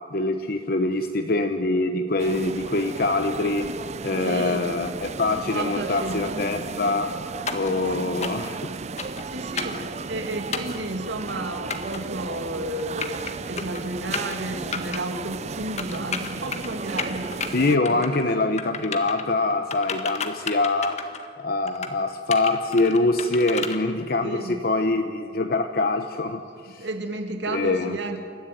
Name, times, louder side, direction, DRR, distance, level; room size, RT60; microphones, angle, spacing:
voice 1, 0.1-3.7 4.0-7.1 7.5-8.6 17.5-21.0 21.4-26.9 27.5-28.0, left 2 dB, 55° left, 7 dB, 1.0 m, -24 dB
sound 1, 2.2-17.8, right 4 dB, 40° right, 0.6 m, -34 dB
voice 2, 4.2-4.7 5.5-6.9 7.7-8.1 9.2-18.1 24.2-24.6 26.7-28.2, right 2 dB, 85° right, 6 dB, 2.5 m, -32 dB
sound 2, 7.5-7.7 8.2-8.5 9.0-9.2 9.6-9.8 10.5-10.8 11.7-12.0 12.8-13.3 13.6-13.8 14.1-14.4 14.7-15.0 15.8-16.7 17.0-17.5 17.8-18.3 18.6-19.2 19.7-21.3 21.7-21.9 22.3-23.8, left 5 dB, 40° left, 1.7 m, -31 dB
28.5 x 14.5 x 9.4 m, 2.3 s
head